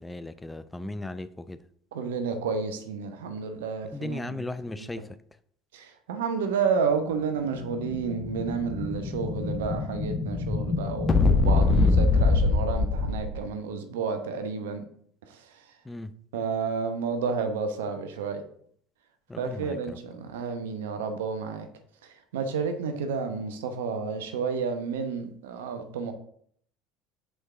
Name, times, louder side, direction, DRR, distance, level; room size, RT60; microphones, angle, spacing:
voice 1, 0.0-1.6 3.9-5.1 11.7-11.9 15.9-16.1 19.3-20.0, left 2 dB, 10° left, 0.4 m, -36 dB
voice 2, 1.9-4.5 4.8-4.9 5.7-14.8 15.3-15.4 16.3-18.4 19.4-21.7 22.3-26.1, right 5 dB, 75° right, 0.8 m, -31 dB
Explosion, 7.3-13.4, left 3 dB, 35° left, 0.8 m, -24 dB
6.5 x 4.6 x 3.7 m
hypercardioid pair, 70°, 0 cm